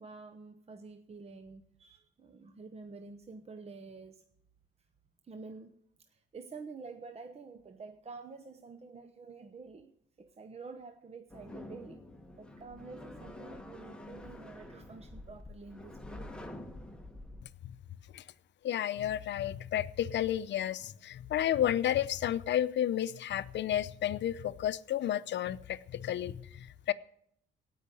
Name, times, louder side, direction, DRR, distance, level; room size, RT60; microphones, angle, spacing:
voice 1, 0.0-4.2 5.2-5.7 6.1-9.9 10.2-12.0 12.4-16.3, right 4 dB, 30° right, 1.0 m, -49 dB
sound 1, 11.3-17.5, left 1 dB, 5° left, 1.4 m, -47 dB
voice 2, 18.6-26.9, left 11 dB, 65° left, 0.7 m, -32 dB
17.0 x 5.7 x 9.0 m
cardioid pair, 90°, 20 cm